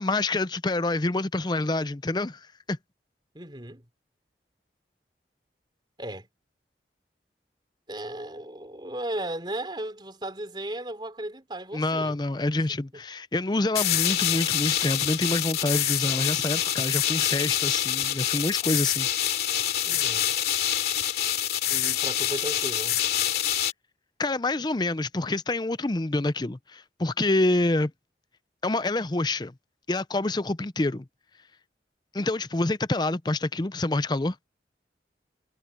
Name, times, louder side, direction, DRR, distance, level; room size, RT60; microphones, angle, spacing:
voice 1, 0.0-2.8 11.7-19.1 24.2-27.9 28.6-29.5 29.9-31.1 32.1-34.4, left 2 dB, 25° left, 0.6 m, -27 dB
voice 2, 3.3-3.8 6.0-6.3 7.9-12.2 19.8-20.3 21.7-23.0, right 1 dB, 25° right, 4.4 m, -35 dB
sound 1, 13.7-23.7, left 11 dB, 60° left, 2.9 m, -26 dB
head